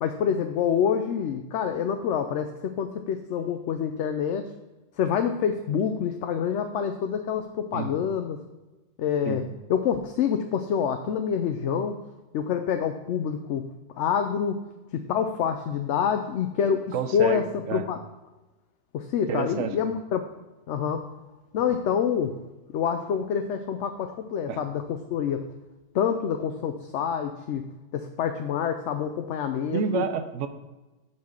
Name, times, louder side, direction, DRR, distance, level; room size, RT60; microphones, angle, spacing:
voice 1, 0.0-4.5 5.0-8.4 9.0-9.4 9.7-12.0 12.3-13.7 14.0-14.6 14.9-18.0 18.9-20.2 20.7-21.1 21.5-22.3 22.7-25.5 25.9-27.6 27.9-30.1, left 8 dB, 70° left, 6 dB, 0.9 m, -27 dB
voice 2, 16.9-17.8 19.3-19.7 24.5-24.6 29.7-30.5, right 6 dB, 75° right, 10 dB, 1.0 m, -29 dB
8.4 x 4.4 x 6.3 m, 1.1 s
omnidirectional pair, 1.3 m